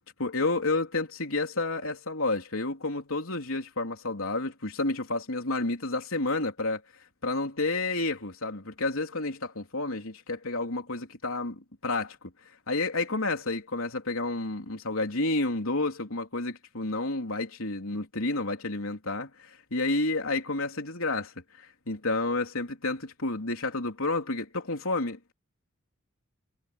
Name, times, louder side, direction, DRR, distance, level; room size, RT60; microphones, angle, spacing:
voice 1, 0.2-6.8 7.2-12.2 12.7-19.3 19.7-21.3 21.9-25.3, left 2 dB, 80° left, 3.5 m, -30 dB
head